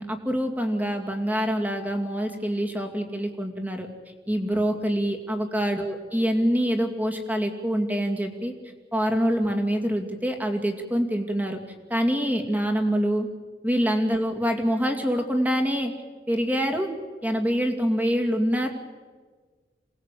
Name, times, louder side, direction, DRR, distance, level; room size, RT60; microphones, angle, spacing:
voice 1, 0.0-3.9 4.3-8.5 8.9-11.6 11.9-13.3 13.6-15.9 16.3-16.9 17.2-18.7, equal, 10° right, 4 dB, 2.5 m, -25 dB
27.5 x 19.5 x 8.5 m, 1.5 s
head